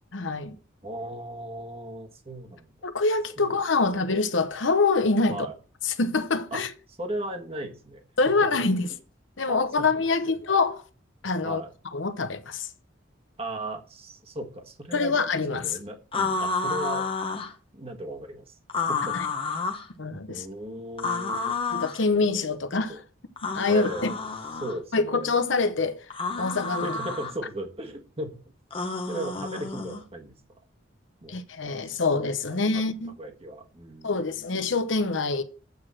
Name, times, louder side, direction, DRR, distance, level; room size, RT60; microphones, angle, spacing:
voice 1, 0.1-0.5 2.8-5.5 5.8-6.7 8.2-8.9 9.4-10.8 11.2-11.6 11.9-12.7 14.9-15.6 19.1-19.3 20.0-20.4 21.7-23.0 23.5-24.1 24.9-26.0 26.4-27.0 31.3-33.1 34.0-35.4, left 3 dB, 70° left, 1.0 m, -25 dB
voice 2, 0.8-2.7 3.4-3.5 3.8-4.0 5.3-5.5 6.5-6.6 7.0-8.3 9.5-10.3 11.4-11.7 13.4-15.2 15.5-17.0 17.7-18.6 18.9-19.2 19.4-19.7 20.3-21.6 22.1-22.4 22.7-23.0 23.7-24.2 24.6-25.3 26.8-28.4 29.1-30.3 31.2-31.4 31.7-31.8 32.5-32.8 33.2-34.5, right 1 dB, 30° right, 1.5 m, -37 dB
sound 1, 16.1-17.5 18.7-19.9 21.0-22.0 23.4-24.8 26.1-27.3 28.7-30.0, left 4 dB, 25° left, 1.0 m, -30 dB
8.2 x 4.9 x 7.5 m
head